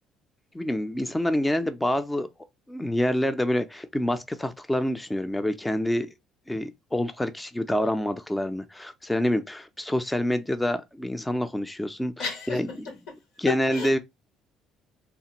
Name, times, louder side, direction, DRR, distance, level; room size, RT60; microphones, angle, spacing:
voice 1, 0.5-2.3 2.7-6.1 6.5-12.7 13.4-14.0, left 1 dB, 10° left, 0.4 m, -27 dB
voice 2, 12.2-13.2 13.5-14.0, left 3 dB, 85° left, 1.2 m, -33 dB
3.2 x 2.1 x 2.8 m
cardioid pair, 90°, 0 cm